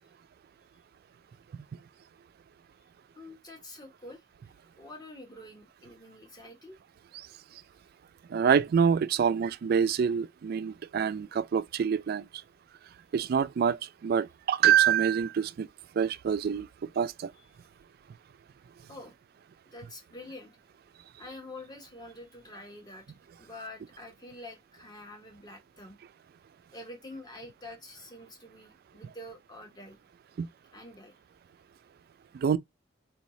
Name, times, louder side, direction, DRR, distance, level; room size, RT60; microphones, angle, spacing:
voice 1, 3.2-4.2 4.8-6.8 18.9-19.1 19.7-20.6 21.2-26.0 26.7-30.0 30.7-31.2, left 1 dB, 20° left, 1.1 m, -47 dB
voice 2, 8.3-12.3 13.1-15.7 16.0-17.3 30.4-30.5 32.3-32.6, right 7 dB, 55° right, 0.3 m, -26 dB
4.6 x 2.6 x 3.1 m
head